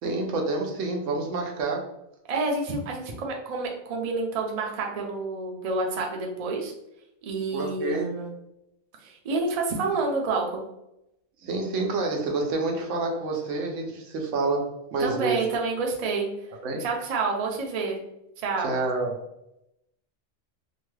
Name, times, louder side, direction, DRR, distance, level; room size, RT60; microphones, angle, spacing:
voice 1, 0.0-1.9 7.5-8.1 11.4-15.4 16.6-16.8 18.6-19.2, right 3 dB, 90° right, 1 dB, 1.0 m, -28 dB
voice 2, 2.3-6.7 7.2-8.3 9.0-10.6 15.0-16.3 16.8-18.0 18.4-18.7, right 3 dB, 50° right, 0 dB, 0.5 m, -28 dB
2.8 x 2.2 x 3.1 m, 0.84 s
omnidirectional pair, 1.2 m